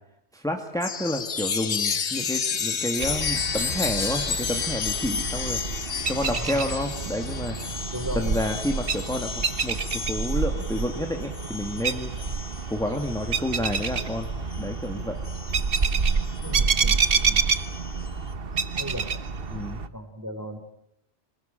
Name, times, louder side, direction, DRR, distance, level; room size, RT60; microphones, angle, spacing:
voice 1, 0.3-5.6 6.1-7.7 8.2-12.1 12.7-14.3 14.6-15.2 19.5-19.8, left 1 dB, 5° left, 3 dB, 2.0 m, -30 dB
Chime, 0.8-14.8 15.2-18.1, left 6 dB, 80° left, 1.6 m, -32 dB
sound 1, 3.0-19.9, right 5 dB, 60° right, 1.3 m, -28 dB
voice 2, 6.3-6.7 7.9-8.4 16.4-17.5 18.7-19.1 19.9-20.6, equal, 15° right, 8 dB, 3.2 m, -36 dB
28.0 x 20.5 x 9.0 m, 0.84 s
omnidirectional pair, 1.1 m